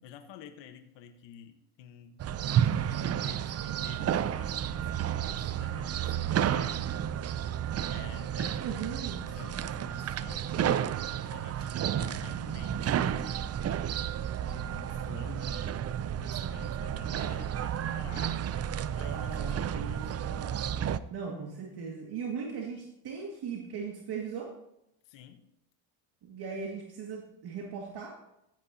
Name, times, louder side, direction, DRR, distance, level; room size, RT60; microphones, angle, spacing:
voice 1, 0.0-2.3 2.6-4.9 5.2-6.9 7.9-8.8 9.3-13.2 14.4-15.9 16.2-18.4 18.9-19.4 19.7-20.1 25.0-25.4, left 8 dB, 60° left, 7 dB, 1.3 m, -50 dB
sound 1, 2.2-21.0, right 9 dB, 30° right, 0.5 m, -31 dB
voice 2, 8.6-9.3 17.9-18.0 19.1-20.7 21.1-24.5 26.2-28.2, right 6 dB, 50° right, 0 dB, 2.3 m, -38 dB
15.5 x 9.1 x 2.8 m, 0.81 s
supercardioid pair, 90°, 48 cm